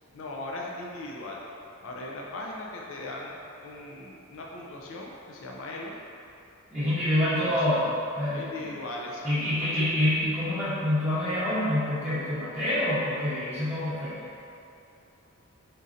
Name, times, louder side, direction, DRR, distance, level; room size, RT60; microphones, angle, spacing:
voice 1, 0.1-1.4 1.8-3.3 3.6-5.9 7.2-7.7 8.3-9.8, left 2 dB, 60° left, -2 dB, 0.5 m, -39 dB
voice 2, 6.7-8.5 9.2-14.1, left 1 dB, 5° left, -17 dB, 1.0 m, -26 dB
5.2 x 4.1 x 2.5 m, 2.6 s
head